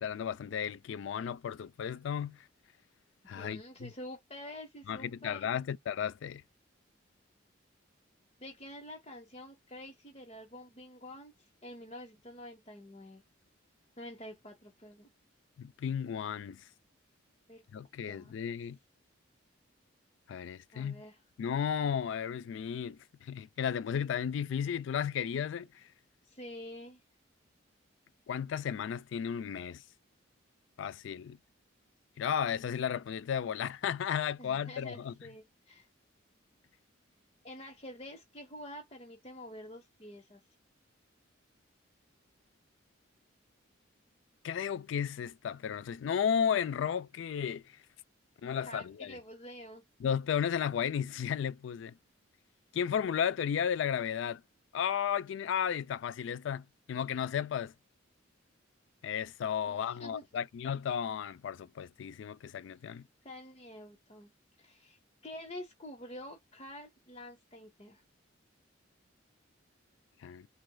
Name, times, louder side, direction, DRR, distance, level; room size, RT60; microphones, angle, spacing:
voice 1, 0.0-2.5 3.3-3.9 4.9-6.4 15.6-16.6 17.7-18.8 20.3-21.0 21.4-25.9 28.3-29.8 30.8-31.4 32.2-35.1 44.4-47.8 48.4-49.2 50.0-51.9 52.7-54.4 54.7-57.7 59.0-63.1 70.2-70.5, left 8 dB, 70° left, 0.3 m, -34 dB
voice 2, 3.2-5.5 8.4-13.2 14.0-15.1 17.5-17.6 18.1-18.4 20.7-21.2 26.2-27.0 34.4-35.9 37.4-40.4 48.6-49.8 59.7-60.4 62.8-63.0 63.2-64.3 64.6-68.0, left 1 dB, 30° left, 1.0 m, -48 dB
6.1 x 2.4 x 2.2 m
head